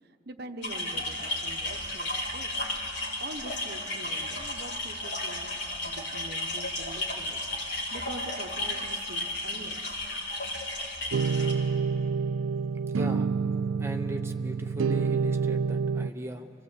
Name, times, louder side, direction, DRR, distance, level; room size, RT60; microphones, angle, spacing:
voice 1, 0.0-2.5 3.2-7.4 7.7-9.8, right 2 dB, 50° right, 7 dB, 1.0 m, -44 dB
sound 1, 0.6-11.5, left 1 dB, 55° left, 3.7 m, -33 dB
sound 2, 11.1-16.1, right 5 dB, 80° right, 0.4 m, -28 dB
voice 2, 12.9-13.3 13.8-16.5, right 1 dB, 10° right, 4 dB, 0.8 m, -38 dB
25.5 x 15.5 x 8.2 m, 2.8 s
head